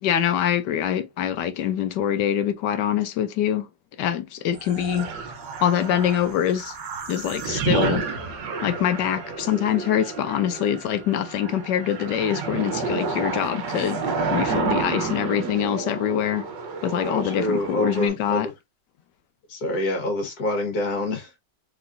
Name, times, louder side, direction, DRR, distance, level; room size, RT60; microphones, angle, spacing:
voice 1, 0.0-3.7 4.0-5.1 5.6-6.8 7.1-8.1 8.6-14.0 14.3-16.5 16.8-18.5, left 10 dB, 75° left, 1.2 m, -24 dB
sound 1, 4.5-18.1, right 4 dB, 70° right, 1.6 m, -30 dB
voice 2, 17.0-18.5 19.5-21.4, left 1 dB, 55° left, 2.0 m, -27 dB
4.1 x 3.8 x 2.6 m
omnidirectional pair, 2.0 m